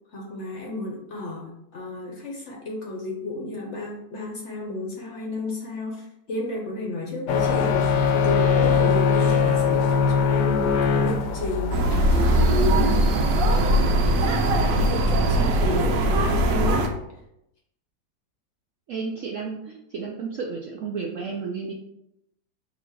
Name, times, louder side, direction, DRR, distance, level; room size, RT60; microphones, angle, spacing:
voice 1, 0.1-13.0 13.3-16.9, left 2 dB, 55° left, -1 dB, 0.9 m, -32 dB
sound 1, 7.3-12.4, left 5 dB, 80° left, 1.2 m, -21 dB
sound 2, 11.7-16.9, right 1 dB, 90° right, 1.3 m, -20 dB
voice 2, 18.9-21.7, right 5 dB, 70° right, -1 dB, 0.7 m, -32 dB
4.0 x 2.8 x 4.5 m, 0.82 s
omnidirectional pair, 1.9 m